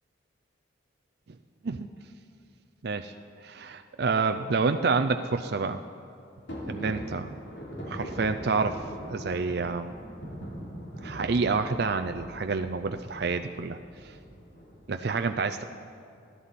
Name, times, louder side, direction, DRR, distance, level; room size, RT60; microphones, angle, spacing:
voice 1, 3.4-5.8 6.7-7.3 7.9-8.8 9.1-9.9 11.0-13.8 14.0-14.1 14.9-15.6, right 4 dB, 55° right, 7 dB, 0.4 m, -28 dB
sound 1, 6.5-15.1, equal, 65° left, 3.3 m, -41 dB
26.0 x 11.0 x 4.2 m, 2.4 s
head